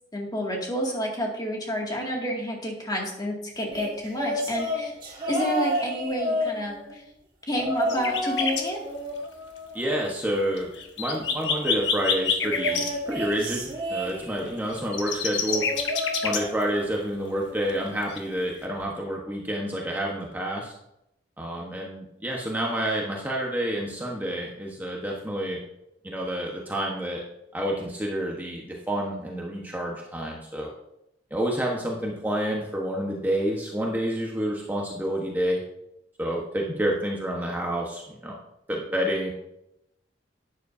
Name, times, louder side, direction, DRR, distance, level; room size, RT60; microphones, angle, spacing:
voice 1, 0.1-4.9 5.3-7.0 7.5-8.8, equal, 25° left, -1 dB, 2.2 m, -29 dB
sound 1, 3.7-7.0 7.5-8.5 8.8-10.4 12.4-14.6 15.5-17.0 17.3-17.7 18.8-18.9, equal, 30° right, 3.2 m, -31 dB
sound 2, 7.9-8.6 10.1-10.2 10.4-12.9 14.7-16.6 18.1-18.2 18.6-18.7, left 6 dB, 80° left, 1.3 m, -27 dB
voice 2, 9.7-10.7 11.0-15.7 16.2-20.7 21.4-25.6 26.0-27.2 27.5-30.7 31.3-35.6 36.2-38.4 38.7-39.3, right 1 dB, 10° right, -2 dB, 1.1 m, -29 dB
11.5 x 9.7 x 2.7 m, 0.83 s
head